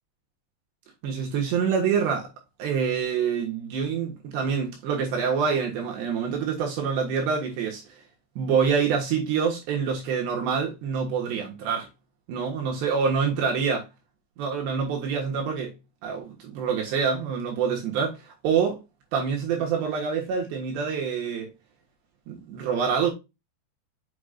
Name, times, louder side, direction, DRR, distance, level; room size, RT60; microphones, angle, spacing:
voice 1, 1.0-2.3 2.6-8.0 8.4-11.9 12.3-13.8 14.4-15.7 16.0-18.8 19.1-21.5 22.3-23.1, right 6 dB, 70° right, 3.4 m, -26 dB
7.0 x 6.6 x 2.4 m
omnidirectional pair, 5.3 m